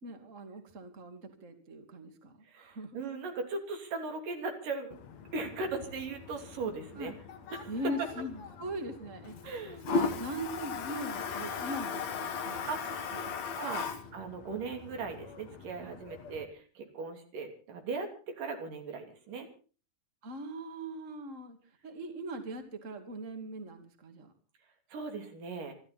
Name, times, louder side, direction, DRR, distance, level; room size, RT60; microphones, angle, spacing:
voice 1, 0.0-3.0 7.0-7.1 7.7-9.3 9.8-12.7 20.2-21.6 21.8-24.3, right 1 dB, 25° right, 6 dB, 2.6 m, -40 dB
voice 2, 2.4-4.9 5.3-7.1 7.5-8.1 9.4-9.8 12.7-13.0 13.6-19.5 24.9-25.7, right 4 dB, 85° right, 5 dB, 4.8 m, -38 dB
Toilet flush, 4.9-16.4, left 5 dB, 60° left, 2.6 m, -38 dB
26.5 x 12.5 x 4.2 m, 0.38 s
omnidirectional pair, 3.7 m